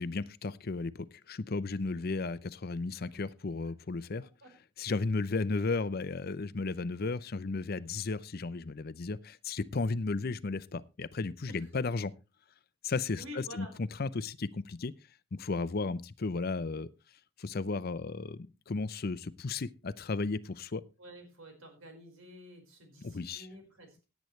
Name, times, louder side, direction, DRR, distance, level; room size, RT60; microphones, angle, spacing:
voice 1, 0.0-4.3 4.8-12.1 12.8-14.9 15.3-16.9 17.4-20.8 23.0-23.5, left 3 dB, 45° left, 0.5 m, -34 dB
voice 2, 13.0-13.7 21.0-24.0, equal, 75° right, 4.8 m, -50 dB
17.0 x 9.2 x 3.2 m
head